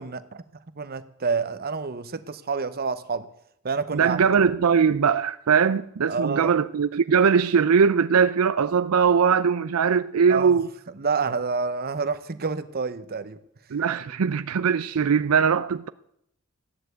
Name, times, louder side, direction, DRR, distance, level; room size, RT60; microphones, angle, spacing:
voice 1, 0.0-3.3 3.6-4.2 6.1-6.5 10.3-10.6 11.0-13.4 13.9-14.0, right 4 dB, 45° right, 0.9 m, -28 dB
voice 2, 3.9-10.7 13.7-15.9, right 6 dB, 75° right, 0.5 m, -21 dB
14.5 x 10.0 x 8.2 m
head